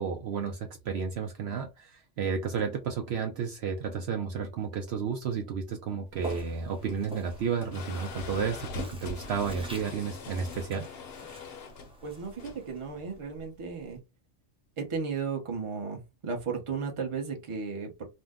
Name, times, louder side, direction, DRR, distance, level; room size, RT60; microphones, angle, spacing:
voice 1, 0.0-10.9, right 6 dB, 65° right, 0.8 m, -32 dB
sound 1, 6.1-14.0, left 4 dB, 65° left, 0.8 m, -43 dB
Walk footsteps, 6.1-13.3, right 1 dB, 10° right, 0.3 m, -47 dB
voice 2, 12.0-14.0 14.8-18.0, right 5 dB, 30° right, 0.7 m, -35 dB
2.6 x 2.1 x 3.4 m
omnidirectional pair, 1.3 m